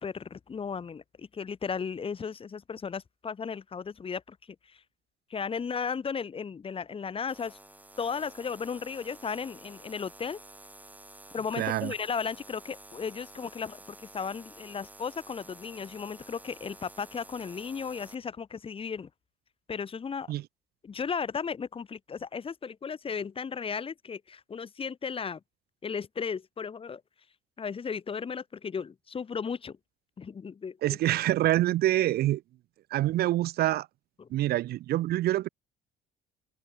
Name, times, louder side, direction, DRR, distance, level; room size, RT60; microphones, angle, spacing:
voice 1, 0.0-4.8 5.3-7.6 8.0-10.4 11.3-19.1 19.7-20.3 20.8-25.4 25.8-27.0 27.6-29.8 30.2-31.0 34.2-34.3, left 6 dB, 35° left, 2.9 m, -35 dB
sound 1, 7.3-18.1, right 2 dB, 10° right, 6.8 m, -51 dB
voice 2, 11.6-11.9 20.3-20.4 30.8-32.4 32.9-33.9 34.3-35.5, right 15 dB, 65° right, 0.8 m, -26 dB
cardioid pair, 110°, 17 cm